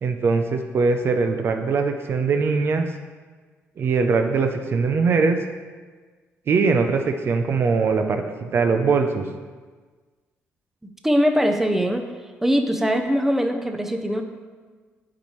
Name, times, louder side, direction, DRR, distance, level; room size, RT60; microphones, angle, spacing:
voice 1, 0.0-2.9 3.8-5.4 6.5-9.3, right 4 dB, 50° right, 6 dB, 0.5 m, -21 dB
voice 2, 11.0-12.0 12.4-14.2, equal, 5° right, 5 dB, 0.6 m, -21 dB
8.6 x 4.3 x 3.1 m, 1.4 s
cardioid pair, 95°, 5 cm